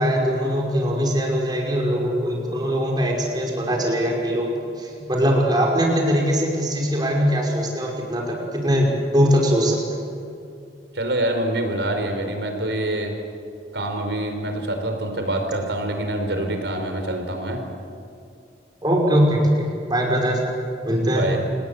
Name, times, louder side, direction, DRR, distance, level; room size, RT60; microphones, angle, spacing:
voice 1, 0.0-4.5 4.8-9.8 18.8-20.4 20.8-21.2, equal, 25° right, -1 dB, 5.5 m, -21 dB
voice 2, 10.9-13.1 13.7-17.6 21.1-21.4, right 1 dB, 85° right, 5 dB, 4.4 m, -25 dB
28.0 x 20.0 x 8.4 m, 2.5 s
head